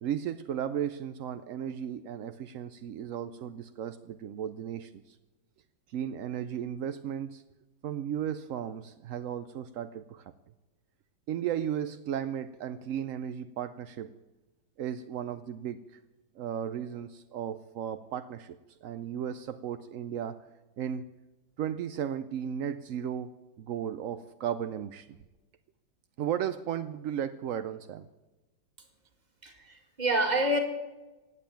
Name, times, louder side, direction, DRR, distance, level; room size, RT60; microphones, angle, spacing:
voice 1, 0.0-5.2 5.9-7.4 7.8-10.2 11.3-14.1 14.8-15.8 16.4-20.4 20.8-21.1 21.6-25.2 26.2-28.1, right 9 dB, 70° right, 11 dB, 0.7 m, -35 dB
voice 2, 29.4-30.6, right 1 dB, 25° right, 4 dB, 2.0 m, -27 dB
16.5 x 8.9 x 9.1 m, 1.1 s
omnidirectional pair, 2.0 m